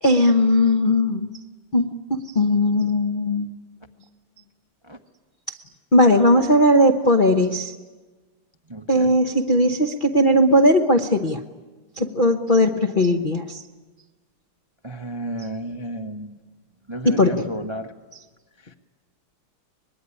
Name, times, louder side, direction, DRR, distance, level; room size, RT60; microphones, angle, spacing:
voice 1, 0.0-1.3 1.7-3.5 5.9-7.7 8.9-11.4 12.0-13.6 17.0-17.5, left 1 dB, 40° left, 3 dB, 0.7 m, -18 dB
voice 2, 8.7-9.1 14.8-16.4 16.9-17.9, right 1 dB, 25° right, 5 dB, 0.5 m, -32 dB
24.5 x 21.0 x 10.0 m, 1.3 s
omnidirectional pair, 2.4 m